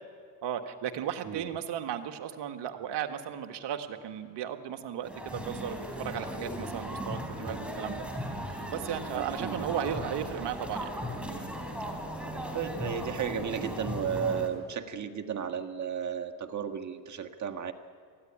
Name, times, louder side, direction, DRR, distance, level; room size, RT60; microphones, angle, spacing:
voice 1, 0.4-8.1 8.7-10.9, right 9 dB, 55° right, 7 dB, 1.7 m, -35 dB
sound 1, 5.0-14.5, equal, ahead, 3.8 m, -37 dB
voice 2, 9.1-9.7 12.5-17.7, right 7 dB, 35° right, 6 dB, 1.6 m, -34 dB
19.5 x 14.5 x 10.0 m, 2.1 s
supercardioid pair, 85°, 49 cm